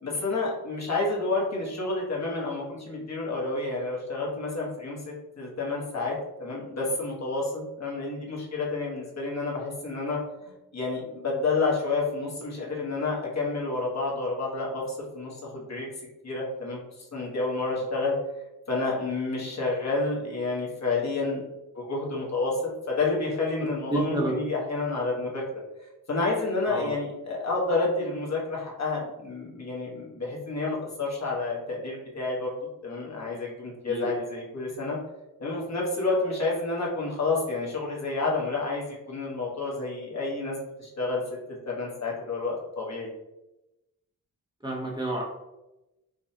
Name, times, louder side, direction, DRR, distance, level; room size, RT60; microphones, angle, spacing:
voice 1, 0.0-15.9 16.2-18.2 18.7-21.4 21.7-25.4 26.1-35.0 35.4-41.2 41.7-43.1, left 3 dB, 50° left, -4 dB, 1.2 m, -29 dB
voice 2, 23.9-24.4 26.7-26.9 33.8-34.1 44.6-45.2, right 2 dB, 10° right, -3 dB, 0.8 m, -29 dB
5.0 x 2.3 x 2.8 m, 0.95 s
wide cardioid pair, 115°, 35 cm